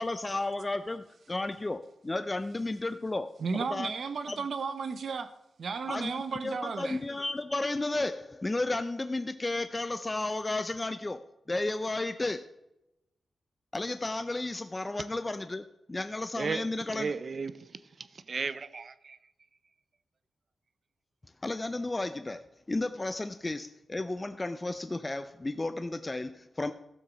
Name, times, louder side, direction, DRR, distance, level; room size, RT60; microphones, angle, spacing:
voice 1, 0.0-3.9 4.3-4.4 5.9-12.6 13.7-17.1 21.4-26.7, left 2 dB, 20° left, 0.5 m, -33 dB
voice 2, 3.4-5.3 5.6-7.0, right 5 dB, 60° right, 1.0 m, -34 dB
voice 3, 16.3-19.2, right 5 dB, 45° right, 0.6 m, -36 dB
14.0 x 7.5 x 6.1 m
wide cardioid pair, 130°, 0 cm